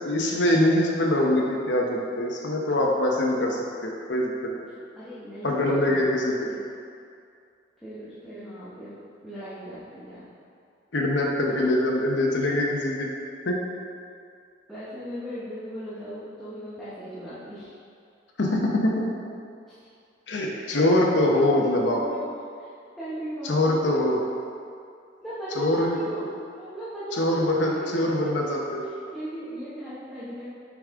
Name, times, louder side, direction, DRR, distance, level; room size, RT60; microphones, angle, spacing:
voice 1, 0.0-4.3 4.6-4.7 5.4-6.5 10.9-13.1 13.4-13.6 18.4-19.1 20.3-22.0 23.4-24.2 25.6-26.0 27.1-28.8, left 1 dB, 75° left, -1 dB, 0.9 m, -23 dB
voice 2, 5.0-6.0 6.5-6.6 7.8-9.0 9.2-10.3 11.5-11.7 14.7-17.7 19.7-19.8 21.3-21.5 21.9-22.2 22.6-22.7 23.0-24.0 25.2-26.3 26.6-28.7 29.1-30.5, equal, ahead, -13 dB, 1.1 m, -37 dB
7.1 x 4.9 x 3.6 m, 2.4 s
head